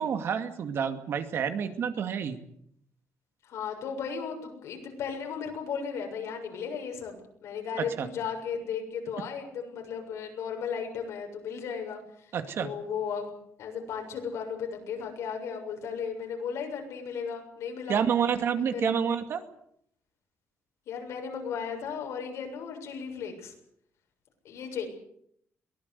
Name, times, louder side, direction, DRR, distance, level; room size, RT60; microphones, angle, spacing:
voice 1, 0.0-2.4 7.8-8.1 12.3-12.7 17.9-19.4, right 7 dB, 55° right, 8 dB, 2.3 m, -28 dB
voice 2, 3.4-12.3 12.6-13.3 13.6-18.0 18.6-19.1 20.9-23.5 24.4-24.9, left 6 dB, 80° left, 3 dB, 7.1 m, -35 dB
23.0 x 18.5 x 8.3 m, 0.70 s
cardioid pair, 160°, 5 cm